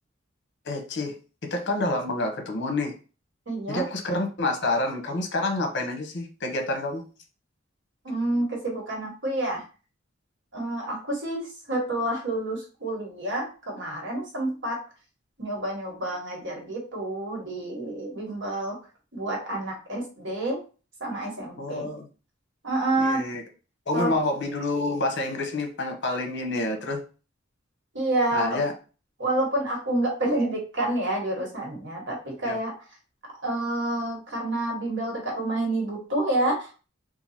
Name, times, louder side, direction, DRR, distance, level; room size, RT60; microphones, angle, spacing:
voice 1, 0.6-1.2 1.4-2.9 3.7-7.1 21.6-22.1 23.0-23.4 23.9-27.0 28.3-28.7 32.4-32.6, left 2 dB, 60° left, 4 dB, 0.8 m, -28 dB
voice 2, 3.5-3.9 8.0-9.6 10.5-14.8 15.4-18.8 19.1-20.6 21.0-21.9 22.6-23.2 23.9-24.1 27.9-28.6 29.2-32.7 33.4-36.9, right 1 dB, 65° right, -2 dB, 1.5 m, -28 dB
2.8 x 2.5 x 4.2 m, 0.35 s
head